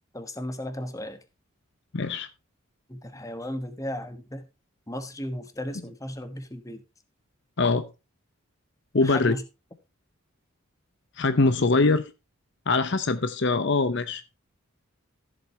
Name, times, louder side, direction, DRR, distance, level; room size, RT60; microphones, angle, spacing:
voice 1, 0.1-1.2 2.9-4.4 4.9-6.8 9.0-9.4, left 1 dB, 15° left, 1.1 m, -35 dB
voice 2, 1.9-2.3 7.6-7.9 8.9-9.4 11.2-12.1 12.7-14.2, left 3 dB, 55° left, 0.7 m, -23 dB
14.5 x 7.8 x 2.8 m
head